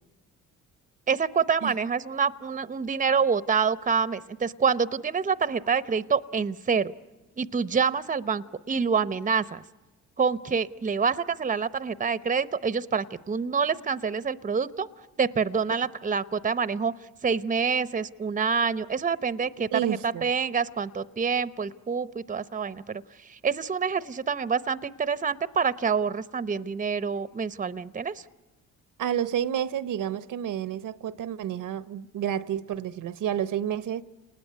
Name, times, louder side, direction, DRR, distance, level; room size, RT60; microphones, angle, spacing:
voice 1, 1.1-6.9 7.4-9.6 10.2-14.9 15.2-16.9 17.2-28.2, right 6 dB, 25° right, 0.8 m, -27 dB
voice 2, 19.7-20.3 29.0-34.0, right 10 dB, 65° right, 0.9 m, -30 dB
28.5 x 20.0 x 9.5 m
supercardioid pair, 70°, 35 cm